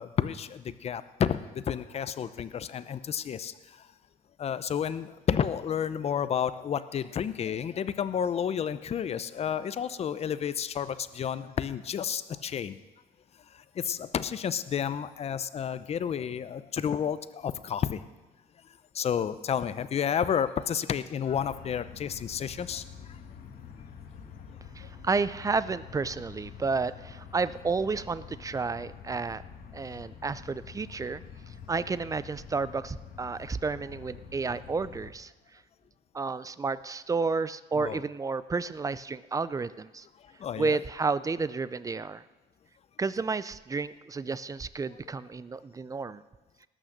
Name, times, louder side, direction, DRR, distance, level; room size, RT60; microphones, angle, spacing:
voice 1, 0.0-3.9 4.4-12.8 13.5-18.0 18.9-23.2 37.8-38.0 40.2-40.8, left 8 dB, 40° left, 14 dB, 0.6 m, -31 dB
sound 1, 21.2-35.1, left 7 dB, 60° left, 1.6 m, -47 dB
voice 2, 24.8-29.4 29.7-31.2 31.7-35.3 36.1-40.1 40.6-42.2 43.0-46.2, right 4 dB, 20° right, 16 dB, 0.4 m, -31 dB
19.0 x 6.3 x 6.5 m, 1.1 s
cardioid pair, 110°, 17 cm